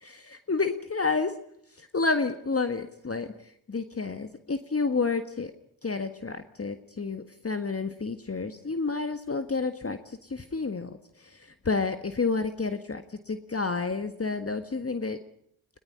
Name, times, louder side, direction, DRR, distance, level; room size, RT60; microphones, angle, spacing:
voice 1, 0.0-1.3 1.7-5.5 5.8-15.2, left 4 dB, 30° left, 10 dB, 1.7 m, -30 dB
21.5 x 19.0 x 9.9 m, 0.71 s
supercardioid pair, 40°, 47 cm